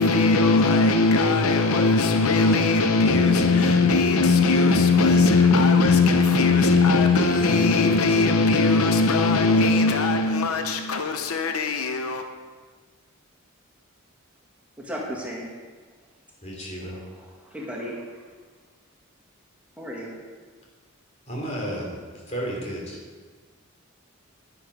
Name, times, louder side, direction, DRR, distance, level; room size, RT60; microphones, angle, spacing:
voice 1, 0.0-12.3, left 3 dB, 85° left, 0.8 m, -19 dB
voice 2, 14.8-15.5 17.2-18.0 19.8-20.1, equal, 5° right, 1.8 m, -34 dB
voice 3, 16.4-17.0 21.3-23.0, equal, 30° left, 3.3 m, -33 dB
11.0 x 10.5 x 4.9 m
head